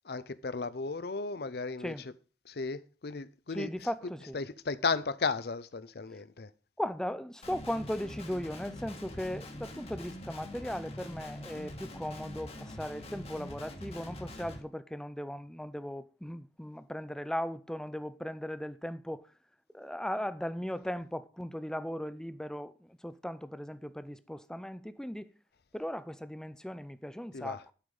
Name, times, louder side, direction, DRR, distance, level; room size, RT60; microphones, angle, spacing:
voice 1, 0.0-1.9 2.5-3.7 4.3-6.5 27.3-27.6, left 4 dB, 60° left, 0.6 m, -34 dB
voice 2, 3.5-4.4 6.8-19.3 19.7-25.3 25.7-27.7, equal, 5° left, 0.5 m, -38 dB
Guitar, 7.4-14.6, left 1 dB, 35° left, 1.5 m, -44 dB
11.5 x 5.1 x 5.4 m
head